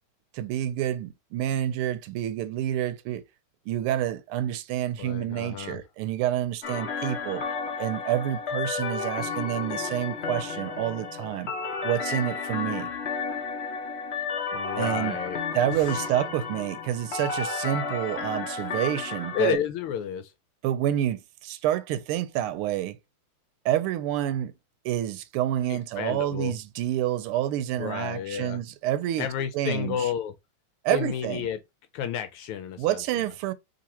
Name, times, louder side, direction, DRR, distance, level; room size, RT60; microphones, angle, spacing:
voice 1, 0.3-3.2 3.7-7.4 7.8-11.5 11.8-12.9 14.8-15.2 15.5-19.6 20.6-23.0 23.6-24.5 24.8-29.3 29.5-30.1 30.8-31.5 32.8-33.5, right 12 dB, 85° right, 1.5 m, -28 dB
voice 2, 5.0-5.8 14.5-15.4 15.7-15.9 19.3-20.3 25.7-26.5 27.8-28.6 29.2-30.3 30.9-31.6 31.9-33.2, left 9 dB, 85° left, 1.5 m, -31 dB
sound 1, 6.6-19.5, left 5 dB, 50° left, 0.8 m, -32 dB
3.8 x 3.0 x 4.2 m
omnidirectional pair, 2.4 m